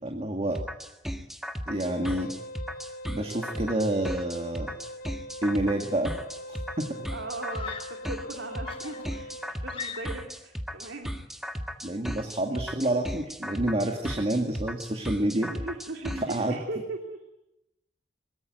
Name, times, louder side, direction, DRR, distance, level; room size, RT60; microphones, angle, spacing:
voice 1, 0.0-0.6 1.7-2.3 3.1-4.7 5.4-6.1 6.5-7.1 11.8-15.5 16.3-16.6, right 1 dB, 35° right, 3 dB, 2.2 m, -28 dB
sound 1, 0.5-16.4, equal, ahead, 1.6 m, -36 dB
Wind instrument woodwind instrument, 1.7-9.5, equal, 55° left, 1.2 m, -42 dB
Screaming, 6.3-6.4 7.5-8.1 8.6-10.4, left 6 dB, 30° left, 3.1 m, -41 dB
voice 2, 7.1-11.1 15.3-17.2, right 2 dB, 80° right, 3 dB, 2.9 m, -38 dB
23.0 x 22.5 x 9.3 m, 0.91 s
head